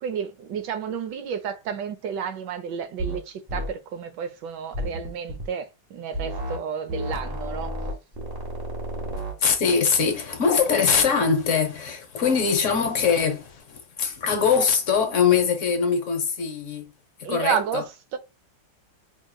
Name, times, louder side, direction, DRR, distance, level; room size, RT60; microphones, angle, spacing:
voice 1, 0.0-7.7 17.2-18.2, right 7 dB, 75° right, 1.3 m, -31 dB
sound 1, 3.0-3.2 3.5-3.7 4.7-5.5 6.1-6.6 6.9-9.4, equal, 40° right, 1.1 m, -31 dB
voice 2, 8.9-16.9 17.2-17.8, left 6 dB, 55° left, 1.0 m, -22 dB
4.9 x 2.9 x 2.2 m
omnidirectional pair, 1.9 m